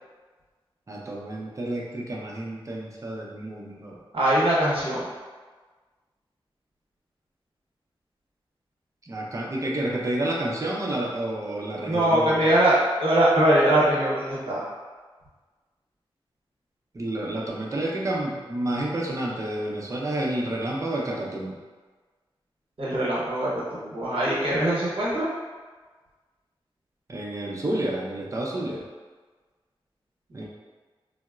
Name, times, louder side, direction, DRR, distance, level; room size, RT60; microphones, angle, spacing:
voice 1, 0.9-4.0 9.0-12.6 16.9-21.6 27.1-28.8 30.3-30.4, right 1 dB, 35° right, -3 dB, 0.5 m, -30 dB
voice 2, 4.1-5.1 11.8-14.7 22.8-25.3, right 1 dB, 75° right, -7 dB, 0.8 m, -22 dB
3.8 x 2.0 x 2.3 m, 1.4 s
wide cardioid pair, 110°, 9 cm